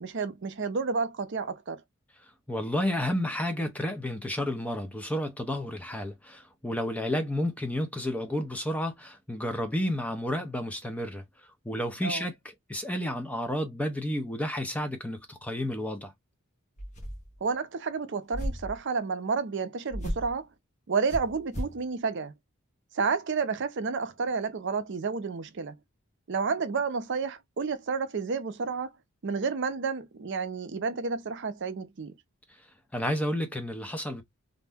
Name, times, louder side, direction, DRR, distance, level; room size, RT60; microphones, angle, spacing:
voice 1, 0.0-1.8 12.0-12.3 17.4-20.5 20.9-22.3 22.9-25.8 26.3-29.0 29.2-32.1, right 5 dB, 55° right, 0.5 m, -30 dB
voice 2, 2.5-11.2 11.6-12.4 12.7-16.1 32.9-34.2, left 1 dB, 5° left, 0.5 m, -31 dB
sound 1, 16.8-17.4 18.3-18.8 19.9-20.4 21.1-21.8, equal, 35° left, 0.9 m, -35 dB
2.6 x 2.1 x 3.4 m
head